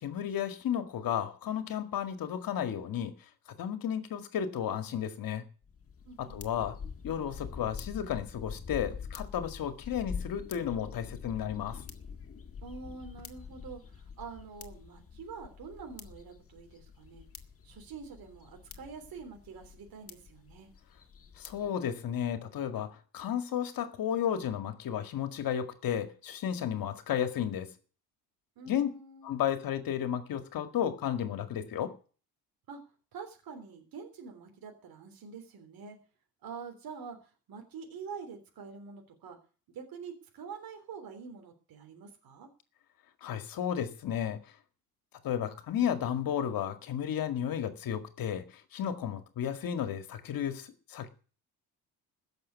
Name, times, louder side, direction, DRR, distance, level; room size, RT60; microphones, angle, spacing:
voice 1, 0.0-3.1 3.6-5.5 6.2-6.8 7.0-11.8 21.4-27.7 28.6-28.9 29.2-31.9 43.2-44.4 45.2-51.1, left 9 dB, 60° left, 2.1 m, -33 dB
sound 1, 5.6-21.7, left 6 dB, 35° left, 1.8 m, -45 dB
voice 2, 6.1-6.8 12.6-17.2 17.6-20.7 28.6-29.3 32.7-32.8 33.1-36.0 36.4-39.4 39.7-42.5, right 5 dB, 65° right, 3.5 m, -46 dB
15.5 x 6.8 x 9.5 m
cardioid pair, 85°, 38 cm